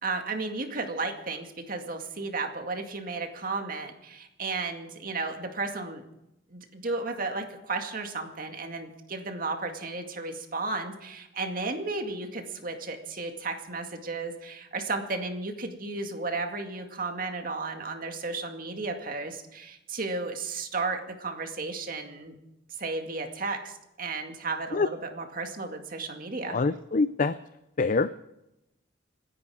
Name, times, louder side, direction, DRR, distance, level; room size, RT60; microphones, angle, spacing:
voice 1, 0.0-6.0 6.5-22.3 22.8-26.6, right 3 dB, 50° right, 5 dB, 2.2 m, -34 dB
voice 2, 26.5-27.3 27.8-28.1, left 3 dB, 45° left, 12 dB, 0.5 m, -25 dB
26.5 x 10.5 x 4.9 m, 0.89 s
head